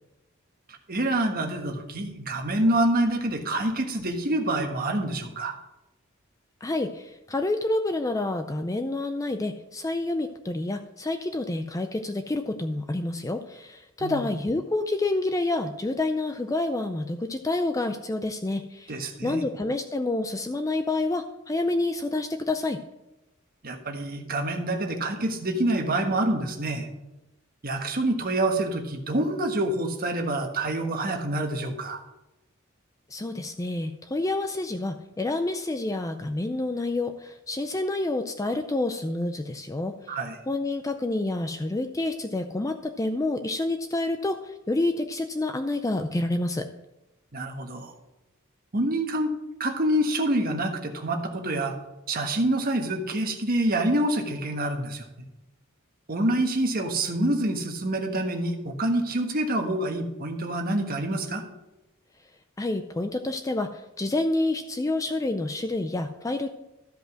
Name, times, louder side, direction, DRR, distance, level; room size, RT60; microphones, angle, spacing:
voice 1, 0.9-5.6 14.0-14.3 18.9-19.4 23.6-26.9 27.6-32.0 40.1-40.3 47.3-47.9 48.7-49.3 49.6-51.7 52.1-55.0 56.1-61.4, right 1 dB, 45° right, 3 dB, 1.4 m, -26 dB
voice 2, 6.6-22.8 33.1-40.2 40.5-46.7 62.6-66.5, left 2 dB, 15° left, 7 dB, 0.4 m, -28 dB
13.0 x 5.3 x 6.3 m, 0.97 s
head